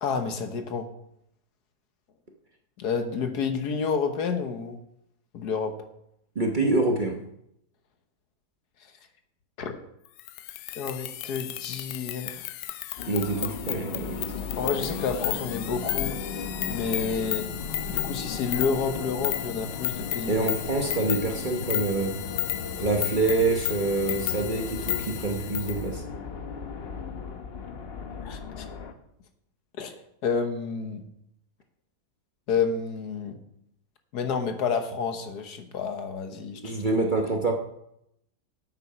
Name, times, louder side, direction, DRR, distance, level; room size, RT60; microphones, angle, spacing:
voice 1, 0.0-0.9 2.8-4.8 5.3-5.7 9.6-9.7 10.7-12.4 14.6-16.2 16.7-17.5 17.9-20.4 28.2-28.7 29.8-29.9 30.2-31.0 32.5-33.4 34.1-36.7, left 5 dB, 70° left, 7 dB, 1.6 m, -29 dB
voice 2, 6.3-7.2 13.1-14.3 20.3-22.2 22.8-26.0 36.6-37.5, right 3 dB, 35° right, 2 dB, 0.9 m, -26 dB
sound 1, 10.2-25.8, left 15 dB, 85° left, 1.2 m, -33 dB
sound 2, 13.0-28.9, left 5 dB, 45° left, 0.9 m, -36 dB
8.7 x 8.6 x 5.6 m, 0.77 s
omnidirectional pair, 1.8 m